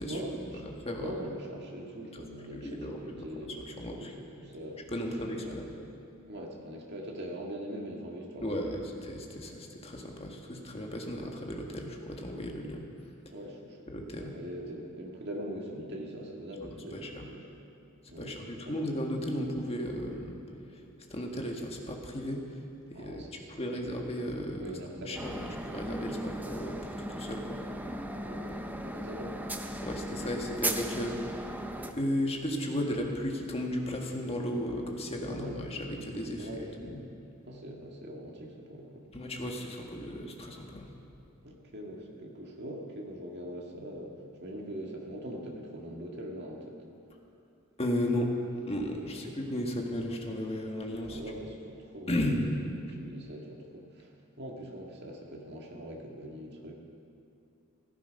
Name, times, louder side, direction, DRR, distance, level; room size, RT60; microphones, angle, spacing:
voice 1, 0.0-0.7 1.0-4.9 5.4-5.6 6.3-8.8 13.3-13.9 14.2-17.5 18.1-18.8 22.9-23.8 24.6-25.2 28.2-29.4 35.2-35.6 36.4-36.8 37.5-39.1 41.4-46.9 49.0-49.4 51.0-52.2 52.9-56.8, equal, 50° right, 0 dB, 2.0 m, -42 dB
voice 2, 0.6-1.2 2.1-2.2 2.5-3.2 3.7-4.1 4.9-5.7 8.4-8.8 9.1-12.8 13.9-14.3 16.9-17.3 18.2-20.4 20.7-20.8 21.1-22.4 22.9-23.3 23.6-24.6 25.0-27.6 29.8-31.6 31.9-36.5 36.8-36.9 39.1-40.9 47.8-48.3 48.7-51.2 52.1-52.4, left 1 dB, 30° left, 1 dB, 1.5 m, -34 dB
sound 1, 25.1-31.9, right 1 dB, 10° right, 0.6 m, -37 dB
16.0 x 13.5 x 5.3 m, 2.7 s
head